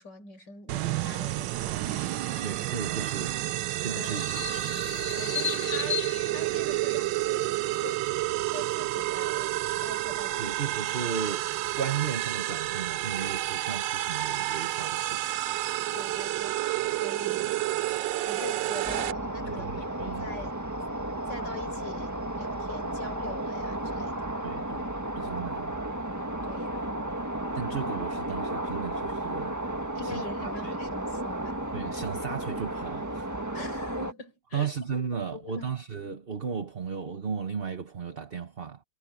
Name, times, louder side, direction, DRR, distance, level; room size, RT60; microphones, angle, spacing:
voice 1, 0.0-2.6 3.9-4.3 5.1-6.1 6.3-8.2 8.5-10.6 15.9-17.6 18.2-19.7 20.0-20.6 21.3-24.3 26.4-26.8 29.9-31.6 33.5-34.7 35.3-35.7, left 3 dB, 60° left, 6.2 m, -44 dB
sound 1, 0.7-19.1, right 16 dB, 75° right, 1.3 m, -30 dB
voice 2, 2.4-3.4 3.8-4.4 10.4-11.5 11.7-15.5 19.4-20.3 24.4-24.9 25.1-25.7 27.5-29.6 30.0-30.7 31.7-33.3 34.5-38.8, right 6 dB, 35° right, 1.1 m, -35 dB
sound 2, 3.0-7.0, left 7 dB, 90° left, 0.3 m, -36 dB
sound 3, 18.8-34.1, right 1 dB, 10° right, 1.3 m, -33 dB
omnidirectional pair, 2.1 m